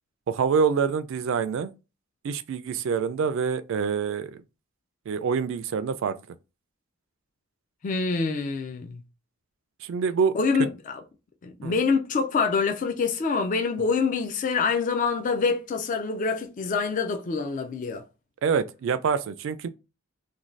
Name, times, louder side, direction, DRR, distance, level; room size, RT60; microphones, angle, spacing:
voice 1, 0.3-1.7 2.2-4.4 5.1-6.1 9.8-10.3 11.6-11.7 18.4-19.7, right 6 dB, 65° right, 0.3 m, -26 dB
voice 2, 7.8-9.0 10.3-11.0 11.4-18.0, left 4 dB, 40° left, 0.3 m, -26 dB
2.5 x 2.2 x 3.1 m
head